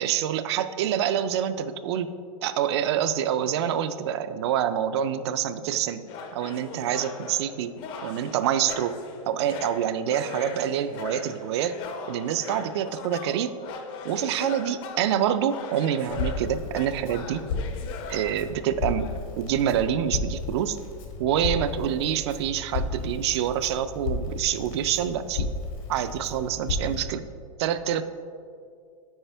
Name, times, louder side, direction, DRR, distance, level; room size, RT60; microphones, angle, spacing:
voice 1, 0.0-2.1 2.4-6.0 6.3-7.7 8.0-9.0 9.3-11.8 12.1-13.6 14.0-17.4 18.1-20.8 21.2-25.5 25.9-27.2 27.6-28.0, right 9 dB, 50° right, 12 dB, 0.4 m, -26 dB
sound 1, 6.1-19.2, left 5 dB, 30° left, 0.5 m, -40 dB
Crackle, 16.1-27.0, left 4 dB, 80° left, 1.5 m, -33 dB
8.8 x 5.0 x 3.3 m, 2.3 s
supercardioid pair, 155°, 17 cm